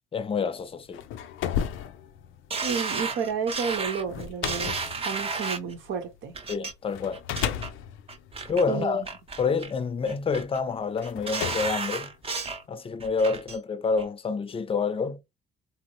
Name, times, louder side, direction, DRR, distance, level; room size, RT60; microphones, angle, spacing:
voice 1, 0.1-1.0 6.5-7.2 8.5-9.0 9.4-12.1 12.7-15.2, left 5 dB, 30° left, 0.4 m, -28 dB
sound 1, 0.7-6.3 6.9-9.4 10.2-10.3 11.0-12.7, left 9 dB, 85° left, 0.4 m, -35 dB
sound 2, 2.5-5.7 6.3-6.7 7.1-7.7 8.1-8.6 9.0-9.7 10.1-10.6 11.0-12.6 13.0-13.6 14.0-14.1, right 4 dB, 30° right, 0.6 m, -33 dB
voice 2, 2.6-4.7 5.0-6.3 8.7-9.1, right 6 dB, 80° right, 0.9 m, -31 dB
2.9 x 2.0 x 2.9 m
cardioid pair, 90°, 20 cm